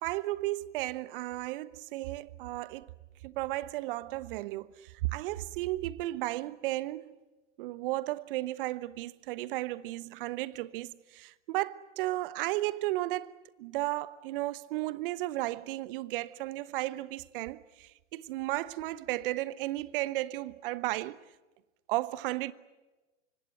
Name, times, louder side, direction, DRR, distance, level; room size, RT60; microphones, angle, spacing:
voice 1, 0.0-2.9 3.2-7.1 7.6-21.2 21.9-22.5, right 17 dB, 50° right, 1.1 m, -34 dB
26.0 x 24.0 x 9.2 m
figure-of-eight pair, 95°, 36 cm